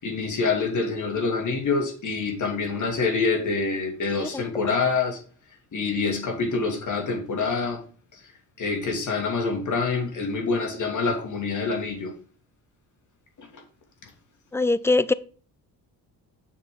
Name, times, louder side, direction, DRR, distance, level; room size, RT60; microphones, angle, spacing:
voice 1, 0.0-5.2 5.7-7.8 8.1-8.2 8.6-12.1 13.4-13.5, left 4 dB, 50° left, 2.7 m, -26 dB
voice 2, 14.5-15.1, left 2 dB, 5° left, 0.4 m, -21 dB
7.1 x 6.5 x 3.9 m
cardioid pair, 100°, 40 cm